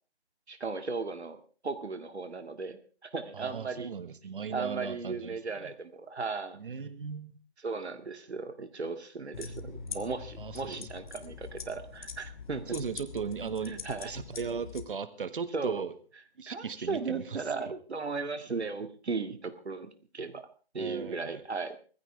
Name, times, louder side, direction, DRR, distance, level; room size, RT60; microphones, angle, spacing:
voice 1, 0.5-3.9 4.5-6.6 7.6-12.6 13.7-14.2 15.5-15.8 16.5-20.5 20.7-21.8, right 4 dB, 80° right, 8 dB, 2.2 m, -36 dB
voice 2, 3.3-5.7 6.5-7.3 10.4-10.8 12.7-13.8 14.0-15.9 16.4-17.7 20.8-21.4, right 6 dB, 55° right, 12 dB, 1.7 m, -37 dB
sound 1, 9.3-14.9, left 5 dB, 45° left, 1.7 m, -43 dB
20.5 x 15.0 x 3.5 m, 0.39 s
hypercardioid pair, 165°, 33 cm